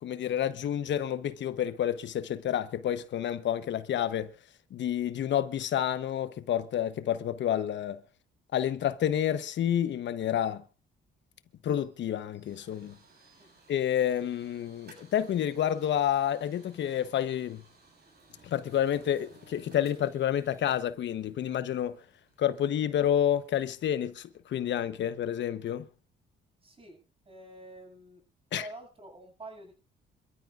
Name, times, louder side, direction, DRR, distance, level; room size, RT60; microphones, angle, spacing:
voice 1, 0.0-4.3 4.7-8.0 8.5-10.6 11.6-13.0 13.7-17.6 18.4-22.0 22.4-25.9 28.5-28.7, left 10 dB, 65° left, 1.0 m, -29 dB
sound 1, 11.6-24.4, right 3 dB, 55° right, 7.5 m, -60 dB
voice 2, 26.6-27.0 27.2-28.2 28.5-29.7, right 1 dB, 30° right, 7.3 m, -47 dB
27.0 x 13.5 x 2.5 m
cardioid pair, 90°, 20 cm